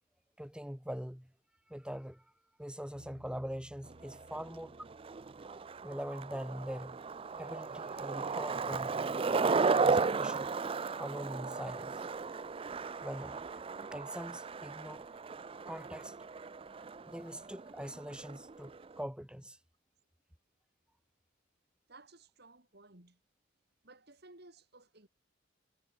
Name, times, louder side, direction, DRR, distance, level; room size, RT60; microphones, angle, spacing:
voice 1, 0.4-1.3 1.7-2.2 2.6-4.8 5.5-5.6 5.8-7.0 7.4-9.0 9.7-10.5 11.0-12.0 12.8-15.1 15.6-16.1 17.0-19.6, equal, 5° right, 1.8 m, -43 dB
Bass guitar, 2.9-9.2, equal, 75° right, 5.6 m, -63 dB
Skateboard, 3.9-19.0, right 4 dB, 30° right, 0.4 m, -35 dB
voice 2, 21.9-23.2 23.8-25.1, right 2 dB, 55° right, 4.6 m, -57 dB
head